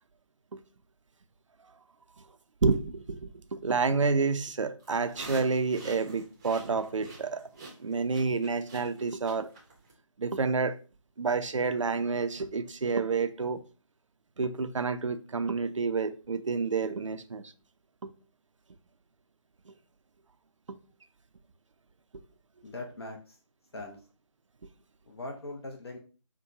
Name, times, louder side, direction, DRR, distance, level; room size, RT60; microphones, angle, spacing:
voice 1, 2.6-7.5 7.8-9.5 10.2-10.8 11.2-13.6 14.4-17.4 18.0-18.1 19.7-19.8 20.7-20.8, right 4 dB, 65° right, 0.5 m, -29 dB
sound 1, 4.8-9.9, right 2 dB, 15° right, 0.7 m, -46 dB
voice 2, 22.6-23.4 23.7-24.0 25.1-26.0, left 2 dB, 50° left, 0.8 m, -40 dB
5.8 x 2.2 x 2.7 m
figure-of-eight pair, 155°, 17 cm